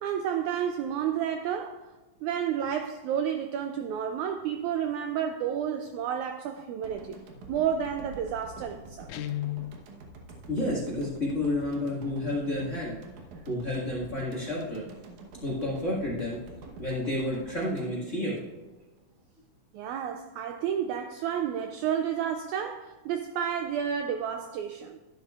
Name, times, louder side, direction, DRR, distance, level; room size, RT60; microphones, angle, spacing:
voice 1, 0.0-1.9 2.2-7.2 7.5-9.1 19.7-25.0, right 8 dB, 90° right, 1.7 m, -31 dB
sound 1, 6.8-19.0, right 2 dB, 65° right, 2.4 m, -47 dB
Guitar, 9.1-9.9, left 14 dB, 85° left, 1.7 m, -33 dB
voice 2, 10.5-13.0 13.5-14.8 15.4-16.4 16.8-18.5, left 1 dB, 30° left, 1.4 m, -30 dB
11.5 x 11.0 x 2.4 m
omnidirectional pair, 3.9 m